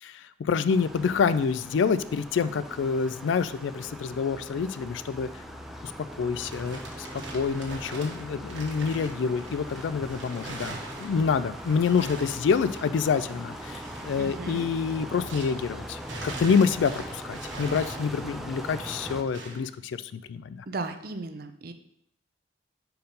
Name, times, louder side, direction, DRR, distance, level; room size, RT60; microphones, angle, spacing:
voice 1, 0.0-5.3 5.8-20.7, left 6 dB, 80° left, 14 dB, 0.3 m, -27 dB
sound 1, 0.7-19.2, equal, ahead, 0.4 m, -41 dB
sound 2, 3.6-14.4, left 1 dB, 30° right, 1.2 m, -51 dB
sound 3, 6.4-15.7 16.0-19.7, right 2 dB, 80° right, 1.4 m, -42 dB
voice 2, 14.2-14.7 20.7-21.7, right 3 dB, 50° right, 8 dB, 0.5 m, -35 dB
5.2 x 4.6 x 5.2 m, 0.76 s
head